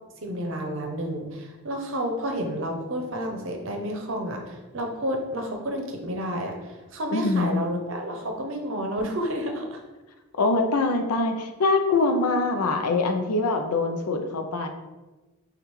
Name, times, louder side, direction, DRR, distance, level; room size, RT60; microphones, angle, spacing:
voice 1, 0.2-9.8 12.0-12.3, equal, 60° right, 3 dB, 0.7 m, -30 dB
voice 2, 7.1-7.6 10.4-14.7, left 3 dB, 85° left, 5 dB, 0.5 m, -24 dB
6.5 x 2.4 x 3.1 m, 1.2 s
head